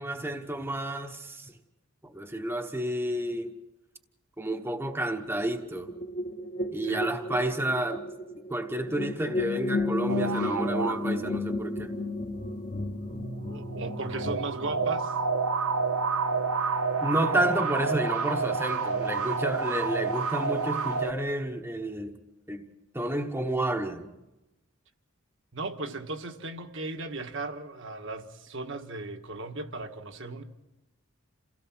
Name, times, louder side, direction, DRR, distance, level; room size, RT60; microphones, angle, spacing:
voice 1, 0.0-1.5 2.0-3.5 4.4-5.9 6.7-8.1 8.5-11.9 17.0-22.2 22.5-22.6 22.9-24.1, right 1 dB, 10° right, 1.1 m, -30 dB
sound 1, 5.3-14.9, left 2 dB, 35° left, 1.2 m, -33 dB
sound 2, 10.1-11.7 13.1-21.1, right 4 dB, 85° right, 1.1 m, -29 dB
voice 2, 13.5-15.1 25.5-30.4, right 2 dB, 55° right, 1.5 m, -37 dB
28.5 x 17.0 x 6.1 m
head